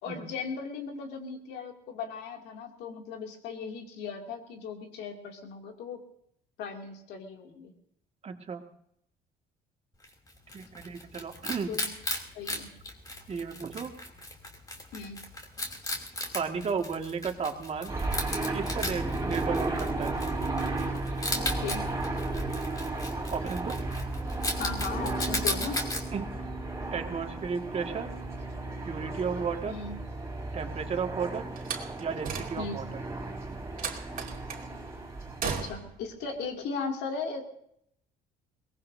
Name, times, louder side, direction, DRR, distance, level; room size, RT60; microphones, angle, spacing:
voice 1, 0.0-6.0 6.6-7.7 11.7-11.9 12.3-12.7 14.9-15.2 21.3-21.9 24.6-25.8 29.7-30.0 32.6-32.8 35.4-37.4, left 5 dB, 80° left, 3 dB, 2.6 m, -37 dB
voice 2, 8.2-8.7 10.5-11.8 13.3-13.9 16.3-17.9 18.5-20.1 23.3-23.8 26.1-26.4 26.9-28.1 28.8-29.8 30.5-31.5 32.0-33.0 33.5-33.6, right 6 dB, 40° right, 4 dB, 1.9 m, -34 dB
Wild animals, 10.0-26.0, left 1 dB, 20° left, 2.9 m, -37 dB
sound 1, 17.9-35.4, right 2 dB, 20° right, 3.7 m, -34 dB
Slam, 31.6-32.9 33.8-34.7 35.4-36.0, right 6 dB, 55° right, 2.3 m, -36 dB
22.5 x 19.5 x 2.7 m, 0.73 s
cardioid pair, 110°, 17 cm